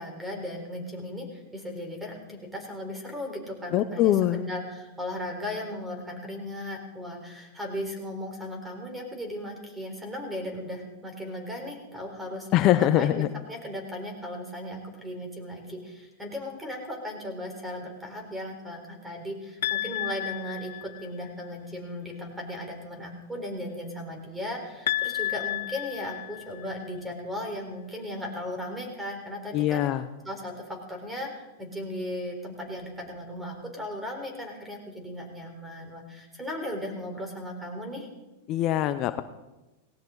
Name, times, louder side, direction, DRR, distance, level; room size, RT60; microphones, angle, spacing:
voice 1, 0.0-12.5 12.8-29.8 30.2-38.1, left 1 dB, 10° right, 3 dB, 4.2 m, -37 dB
voice 2, 3.7-4.4 12.5-13.3 29.5-30.0 38.5-39.2, left 13 dB, 40° left, 10 dB, 0.7 m, -23 dB
sound 1, 19.6-21.3 24.9-26.9, left 13 dB, 75° left, 0.4 m, -32 dB
17.5 x 17.5 x 4.0 m, 1.1 s
hypercardioid pair, 120°, 0 cm